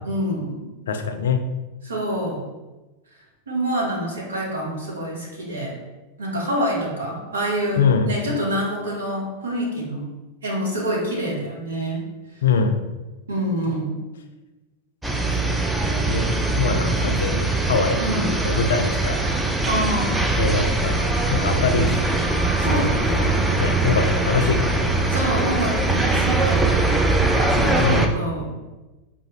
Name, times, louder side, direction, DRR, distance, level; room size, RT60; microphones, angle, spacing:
voice 1, 0.0-0.6 1.8-2.4 3.5-5.7 6.2-10.1 10.4-12.0 13.3-14.0 18.0-18.3 19.7-20.1 22.6-23.4 25.1-27.0 27.5-28.5, right 1 dB, 70° right, -4 dB, 1.2 m, -26 dB
voice 2, 0.9-1.4 7.8-8.1 12.4-12.8 15.3-15.6 16.1-16.3 16.6-18.1 18.4-19.2 20.4-22.2 23.5-25.1 27.8-28.1, left 5 dB, 65° left, 6 dB, 0.4 m, -23 dB
sound 1, 15.0-28.1, right 2 dB, 5° right, 0.3 m, -21 dB
sound 2, 21.1-27.4, equal, 35° right, 1.3 m, -39 dB
4.9 x 2.3 x 3.0 m, 1.1 s
figure-of-eight pair, 90°, 0 cm